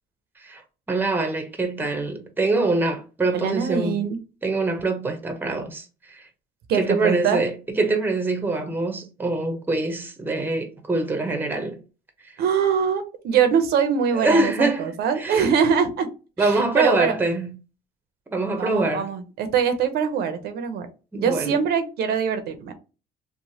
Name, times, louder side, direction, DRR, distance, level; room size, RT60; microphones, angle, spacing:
voice 1, 0.9-4.0 4.4-6.2 6.7-11.8 14.1-15.5 16.4-17.5 18.3-19.0 21.1-21.5, right 3 dB, 10° right, 0.6 m, -24 dB
voice 2, 3.3-4.2 6.7-7.4 12.4-16.1 16.4-17.2 18.6-20.9 21.1-22.7, right 7 dB, 70° right, 0.6 m, -23 dB
3.0 x 2.1 x 2.7 m
cardioid pair, 110°, 17 cm